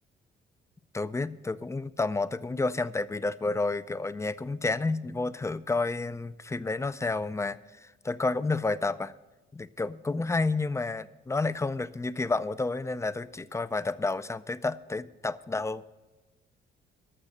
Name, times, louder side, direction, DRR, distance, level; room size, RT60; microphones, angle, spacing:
voice 1, 0.9-9.1 9.5-15.9, left 3 dB, 15° left, 15 dB, 0.4 m, -30 dB
13.5 x 6.6 x 6.5 m, 1.1 s
cardioid pair, 90°, 20 cm